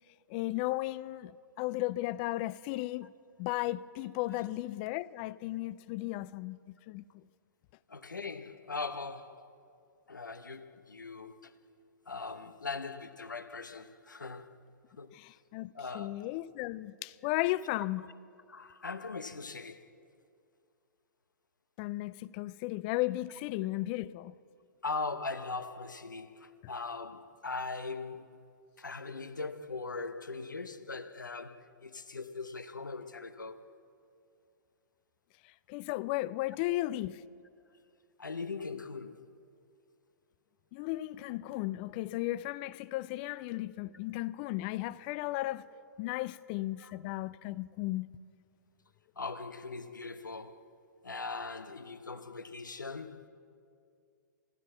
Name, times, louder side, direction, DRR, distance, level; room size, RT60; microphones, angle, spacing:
voice 1, 0.3-1.3 1.6-3.1 3.4-6.6 6.9-7.0 15.1-18.0 21.8-24.3 35.7-37.2 40.7-45.7 46.0-48.1, left 17 dB, 30° left, 0.3 m, -35 dB
voice 2, 7.9-9.5 10.1-11.5 12.1-14.6 15.0-15.1 15.7-16.3 18.5-19.9 24.8-28.4 28.8-33.6 38.2-39.3 46.1-46.2 46.8-46.9 49.2-50.7 51.0-53.3, left 4 dB, 80° left, 0.8 m, -40 dB
15.0 x 13.0 x 7.4 m
figure-of-eight pair, 110°, 10 cm